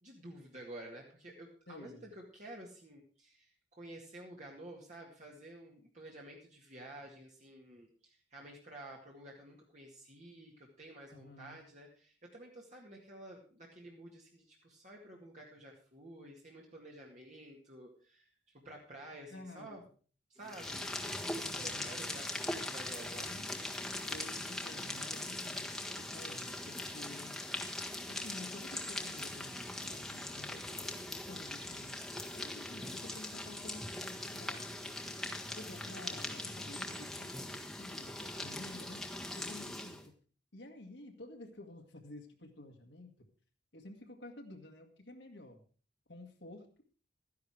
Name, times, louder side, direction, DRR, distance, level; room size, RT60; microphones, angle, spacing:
voice 1, 0.0-18.3 18.6-19.8 20.3-23.3, right 1 dB, 40° right, -2 dB, 2.1 m, -51 dB
voice 2, 1.7-2.1 11.1-11.6 19.3-19.9 21.4-22.0 23.3-23.5 24.1-27.4 28.1-32.0 32.3-39.1 39.3-40.2 40.5-43.1 43.7-45.6 46.1-46.8, left 2 dB, 70° left, 3 dB, 1.9 m, -51 dB
sound 1, 20.4-40.1, left 1 dB, 5° left, 1.5 m, -41 dB
14.0 x 10.5 x 4.8 m, 0.40 s
head